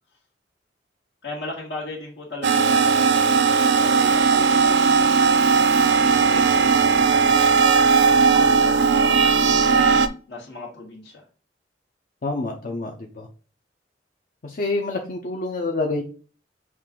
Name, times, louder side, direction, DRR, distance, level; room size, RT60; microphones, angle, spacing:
voice 1, 1.2-3.3 3.8-5.0 5.9-7.6 8.2-9.7 10.3-11.2, left 2 dB, 80° left, -6 dB, 1.6 m, -37 dB
sound 1, 2.4-10.1, right 5 dB, 70° right, 0.4 m, -17 dB
voice 2, 12.2-13.3 14.4-16.0, left 2 dB, 50° left, 1 dB, 0.6 m, -27 dB
6.0 x 2.4 x 3.6 m, 0.38 s
head